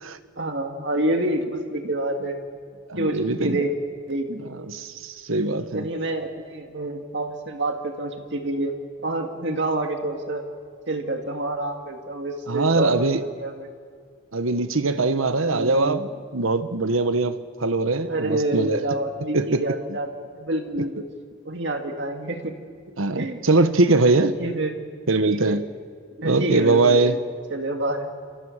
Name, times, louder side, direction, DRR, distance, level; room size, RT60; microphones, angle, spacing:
voice 1, 0.4-2.4 3.0-3.7 4.1-4.5 5.7-8.7 9.0-10.4 10.9-13.7 15.5-16.0 18.1-21.1 21.4-22.5 23.1-23.4 24.2-24.8 25.2-25.6 26.2-27.2 27.5-28.1, right 1 dB, 60° right, 4 dB, 2.1 m, -27 dB
voice 2, 2.9-3.6 4.7-5.9 12.5-13.2 14.3-18.8 19.3-19.6 23.0-24.4 25.1-25.6 26.2-27.2, right 3 dB, 85° right, 11 dB, 1.2 m, -22 dB
28.5 x 27.0 x 6.6 m, 2.1 s
head